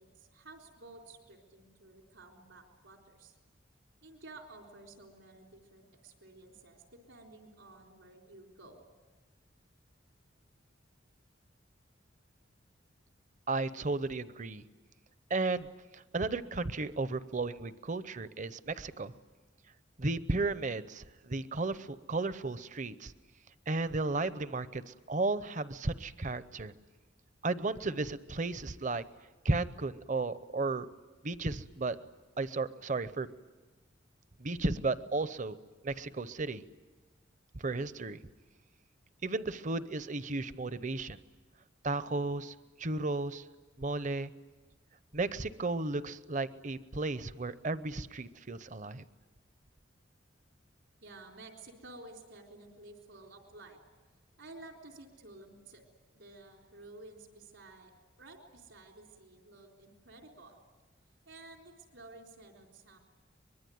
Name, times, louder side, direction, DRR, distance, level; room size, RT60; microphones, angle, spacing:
voice 1, 0.0-3.4 4.0-8.8 51.0-53.8 54.4-55.8 56.1-57.9 58.2-60.6 61.3-63.0, right 2 dB, 80° right, 2 dB, 3.9 m, -53 dB
voice 2, 13.5-14.6 15.3-15.7 15.9-19.1 20.0-23.1 23.7-26.7 27.4-29.0 29.4-30.9 31.2-32.0 32.4-33.3 34.4-35.6 35.8-36.6 37.5-38.2 39.2-41.2 41.8-43.4 43.8-44.3 45.1-49.0, right 3 dB, 40° right, 14 dB, 0.8 m, -34 dB
24.0 x 22.0 x 9.4 m, 1.2 s
head